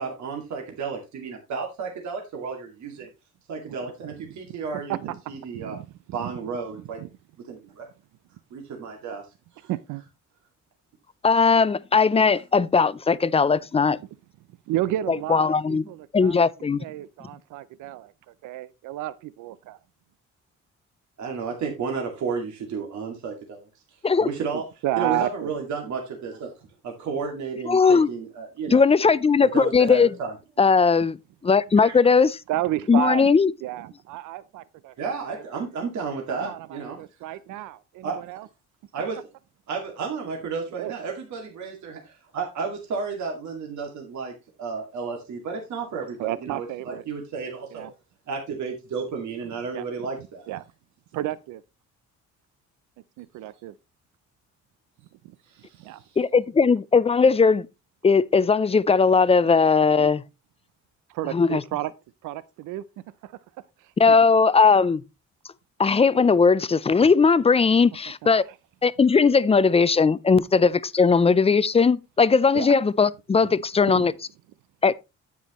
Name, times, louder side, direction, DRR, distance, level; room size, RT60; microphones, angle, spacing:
voice 1, 0.0-3.1 3.5-5.0 5.3-5.8 6.1-7.0 7.5-7.9 8.5-9.3 9.6-9.7 21.2-23.7 24.2-24.6 25.0-28.8 29.4-30.3 31.8-32.0 35.0-37.0 37.3-37.4 38.0-38.2 38.9-39.2 39.7-47.9 48.3-50.5 55.4-56.2, right 5 dB, 70° right, 2.2 m, -32 dB
voice 2, 5.5-6.3 7.0-7.1 9.7-10.0 14.7-16.4 16.8-18.1 18.4-19.8 24.5-25.5 32.5-33.3 33.6-34.9 35.3-35.4 36.3-38.5 40.7-40.9 46.2-47.0 47.7-47.9 49.7-50.1 50.5-50.6 51.1-51.6 53.2-53.7 55.2-55.4 55.8-56.0 61.1-61.9 62.2-62.8 63.2-63.4 63.8-64.2 68.5-68.6 72.5-72.7 73.4-73.5 73.9-74.1, right 14 dB, 90° right, 0.6 m, -31 dB
voice 3, 11.2-14.0 15.1-15.8 16.1-16.8 24.0-24.3 27.7-28.1 28.7-30.1 30.6-31.2 31.4-32.4 32.9-33.5 56.2-57.7 58.0-60.2 61.3-61.6 64.0-65.0 65.8-68.4 68.8-74.1 74.8-74.9, left 5 dB, 20° left, 0.4 m, -19 dB
9.2 x 8.5 x 3.0 m
cardioid pair, 90°, 30 cm